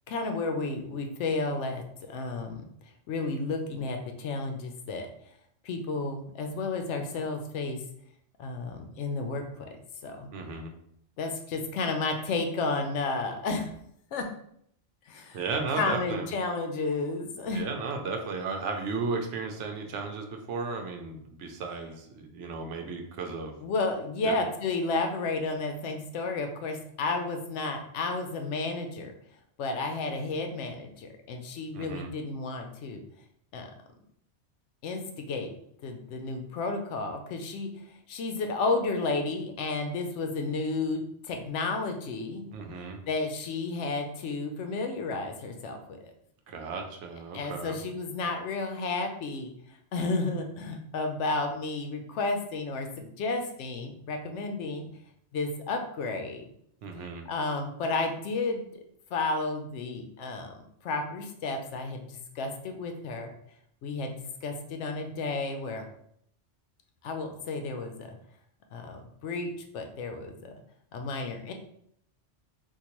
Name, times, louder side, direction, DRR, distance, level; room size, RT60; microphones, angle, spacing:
voice 1, 0.1-2.6 3.1-5.1 5.6-7.8 8.4-9.7 10.0-10.3 11.2-13.7 14.1-14.3 15.1-15.4 15.7-17.6 23.6-29.1 29.6-33.0 33.5-33.7 34.8-35.5 35.8-37.7 38.1-42.5 43.1-46.1 47.3-49.5 49.9-54.9 55.3-56.5 57.3-58.7 59.1-63.3 63.8-65.9 67.0-68.1 68.7-70.5 70.9-71.5, left 3 dB, 80° left, 5 dB, 0.9 m, -32 dB
voice 2, 10.3-10.7 15.3-16.3 17.5-23.6 24.2-24.3 31.7-32.1 42.5-43.0 46.5-47.8 56.8-57.3, right 4 dB, 80° right, 3 dB, 0.9 m, -34 dB
3.7 x 2.5 x 2.9 m, 0.70 s
omnidirectional pair, 1.2 m